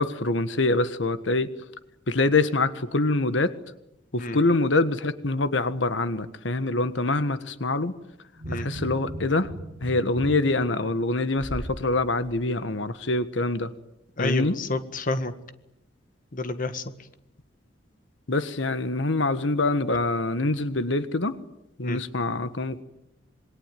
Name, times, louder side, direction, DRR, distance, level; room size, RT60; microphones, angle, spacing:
voice 1, 0.0-1.5 2.1-3.5 4.1-7.9 8.5-9.5 9.8-13.7 14.2-14.6 18.3-21.3 21.8-22.8, left 2 dB, 85° left, 12 dB, 1.5 m, -25 dB
sound 1, 8.4-11.8 12.3-12.4, right 1 dB, 30° right, 8.0 m, -37 dB
voice 2, 14.2-15.3 16.3-16.8 21.8-22.0, left 2 dB, 45° left, 10 dB, 1.7 m, -29 dB
27.0 x 22.5 x 9.4 m, 0.85 s
head